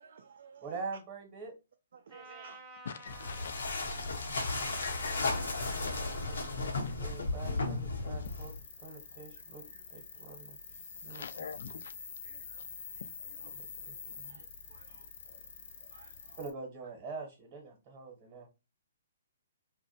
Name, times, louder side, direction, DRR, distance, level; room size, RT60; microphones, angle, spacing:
voice 1, 0.0-0.7 1.9-2.6 2.9-3.0 4.7-5.0 9.7-9.8 12.2-12.6 13.0-13.6 14.3-15.1 15.9-16.4, right 6 dB, 65° right, 0.3 m, -57 dB
voice 2, 0.6-1.5 4.8-6.7 7.0-9.6 9.9-10.6 11.0-11.5 13.6-14.4 16.4-18.5, right 4 dB, 30° right, 0.8 m, -45 dB
Trumpet, 2.1-7.0, right 2 dB, 5° left, 0.5 m, -52 dB
voice 3, 2.9-4.0 4.8-5.2 5.4-5.5 7.2-7.3 11.1-11.9, left 7 dB, 65° left, 0.3 m, -44 dB
sound 1, 3.1-8.6, left 3 dB, 85° left, 0.7 m, -34 dB
sound 2, 8.2-16.5, left 5 dB, 50° left, 0.7 m, -47 dB
2.5 x 2.1 x 2.6 m
hypercardioid pair, 155°, 0 cm